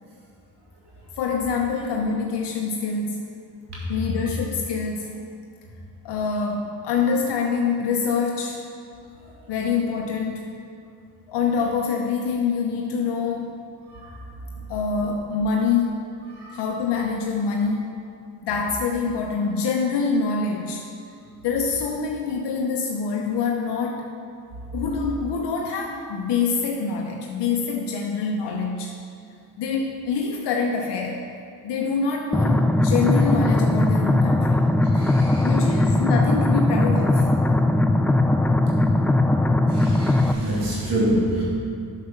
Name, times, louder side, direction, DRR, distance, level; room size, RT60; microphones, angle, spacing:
voice 1, 1.2-3.3 3.9-5.2 6.0-8.6 9.5-10.5 11.3-13.5 14.7-16.0 16.5-18.0 18.4-20.9 21.4-24.1 24.7-29.0 29.6-31.2 31.6-34.6 35.4-37.3, left 5 dB, 80° left, 0 dB, 0.9 m, -25 dB
sound 1, 32.3-40.3, left 2 dB, 5° left, 0.3 m, -19 dB
voice 2, 34.9-35.5 39.7-41.4, right 1 dB, 70° right, -5 dB, 2.4 m, -26 dB
7.5 x 6.8 x 5.9 m, 2.4 s
cardioid pair, 75°, 41 cm